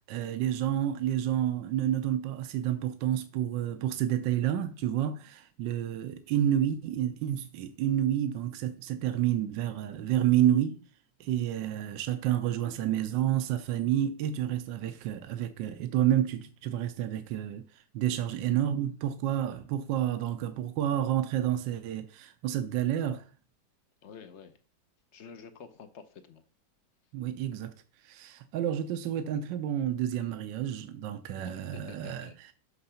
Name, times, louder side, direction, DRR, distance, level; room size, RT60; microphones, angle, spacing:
voice 1, 0.0-10.8 11.2-17.6 17.9-23.3 27.1-27.7 28.0-32.5, right 11 dB, 75° right, 1.3 m, -29 dB
voice 2, 24.0-24.6 25.1-26.4 31.4-32.4, left 6 dB, 55° left, 0.8 m, -49 dB
6.8 x 5.7 x 5.6 m
omnidirectional pair, 2.0 m